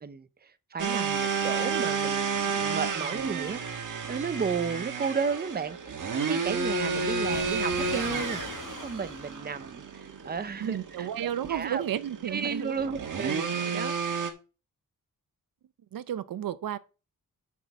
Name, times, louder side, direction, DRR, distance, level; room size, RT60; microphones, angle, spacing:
voice 1, 0.0-11.8 12.3-13.9, right 5 dB, 30° right, 0.7 m, -34 dB
sound 1, 0.8-14.3, right 5 dB, 65° right, 1.5 m, -31 dB
Waves surf, 6.1-9.4, left 5 dB, 65° left, 1.5 m, -42 dB
voice 2, 10.6-12.8 13.3-13.4 15.9-16.8, right 10 dB, 85° right, 0.6 m, -32 dB
6.1 x 5.8 x 7.0 m
wide cardioid pair, 145°, 33 cm